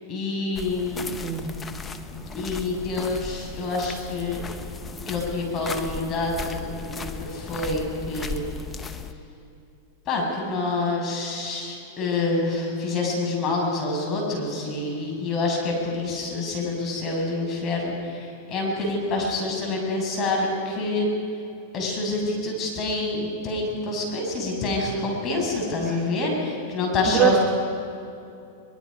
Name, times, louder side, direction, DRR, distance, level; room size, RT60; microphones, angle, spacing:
voice 1, 0.1-1.1 2.3-4.4 5.1-8.5 10.1-21.1 21.7-27.4, left 2 dB, 35° left, -1 dB, 6.9 m, -27 dB
sound 1, 0.6-9.1, left 4 dB, 20° left, 1.2 m, -36 dB
voice 2, 1.2-1.6 25.9-26.2 27.1-27.4, right 10 dB, 20° right, 1 dB, 1.8 m, -23 dB
23.0 x 22.5 x 5.4 m, 2.7 s
hypercardioid pair, 115°, 0 cm